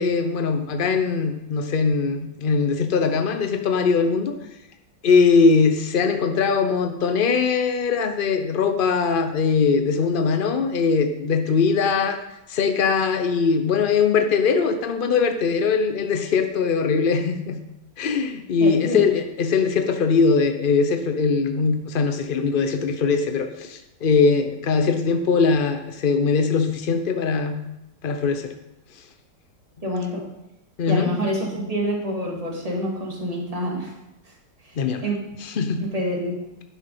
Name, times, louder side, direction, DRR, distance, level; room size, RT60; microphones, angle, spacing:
voice 1, 0.0-4.3 5.0-12.2 12.5-17.6 18.0-27.6 28.0-28.5 30.8-31.1 34.8-35.0 35.4-35.8, left 5 dB, 75° left, 7 dB, 0.4 m, -21 dB
voice 2, 18.6-19.1 29.8-30.2 30.9-33.9 34.6-35.2 35.8-36.3, equal, 20° right, -2 dB, 2.2 m, -27 dB
11.0 x 6.2 x 5.4 m, 0.91 s
omnidirectional pair, 1.9 m